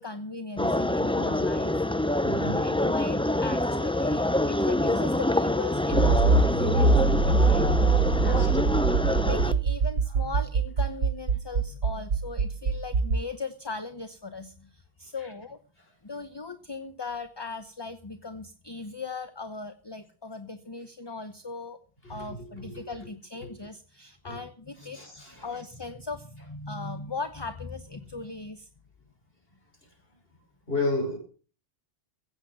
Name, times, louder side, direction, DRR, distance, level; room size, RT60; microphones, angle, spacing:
voice 1, 0.0-1.8 2.2-8.6 9.2-15.6 16.0-21.8 22.1-25.0 25.4-28.7, left 4 dB, 25° left, 0.9 m, -38 dB
sound 1, 0.6-9.5, left 1 dB, 10° left, 0.4 m, -26 dB
voice 2, 2.2-2.6 8.1-8.5 15.2-15.3 15.8-15.9 22.0-22.8 23.4-23.5 24.2-24.4 24.8-25.6 29.8-29.9 30.7-31.2, left 2 dB, 50° left, 5.7 m, -33 dB
Accelerating revving vroom, 5.9-13.2, right 4 dB, 80° right, 1.4 m, -23 dB
16.0 x 8.1 x 7.3 m
omnidirectional pair, 1.2 m